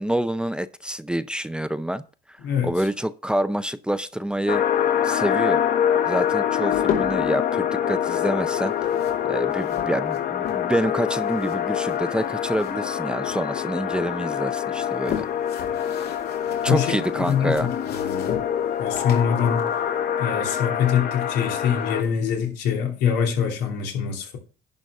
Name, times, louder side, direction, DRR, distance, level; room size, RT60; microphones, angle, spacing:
voice 1, 0.0-2.0 2.6-4.6 5.0-5.6 6.1-8.7 9.3-15.3 16.6-17.7, right 1 dB, 5° right, 0.5 m, -27 dB
voice 2, 2.4-2.7 16.7-17.0 17.3-18.4 18.8-19.7 20.2-24.4, left 8 dB, 90° left, 2.9 m, -24 dB
sound 1, 4.5-22.0, left 9 dB, 55° left, 1.1 m, -25 dB
sound 2, 6.1-7.4 8.5-10.8 11.1-13.0 13.2-14.1 14.6-20.7, left 8 dB, 70° left, 2.6 m, -36 dB
11.0 x 4.1 x 6.6 m
cardioid pair, 110°, 17 cm